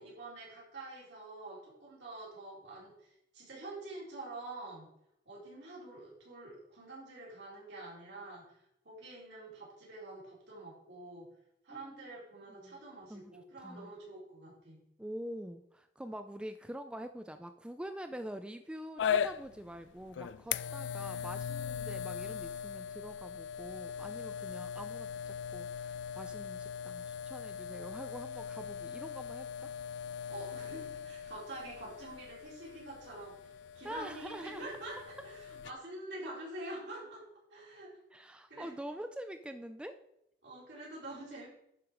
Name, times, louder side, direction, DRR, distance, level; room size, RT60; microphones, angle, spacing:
voice 1, 0.0-4.9 5.3-8.4 8.8-11.3 11.6-14.8 30.3-37.2 37.5-37.9 38.2-38.7 40.4-41.5, right 2 dB, 70° right, -5 dB, 4.1 m, -47 dB
voice 2, 11.7-12.1 12.5-12.8 13.1-13.3 13.6-13.9 15.0-29.7 33.8-34.7 38.1-40.0, equal, 5° right, 8 dB, 0.3 m, -45 dB
sound 1, 19.0-35.7, left 8 dB, 80° left, 0.3 m, -39 dB
11.0 x 5.1 x 4.8 m, 0.79 s
head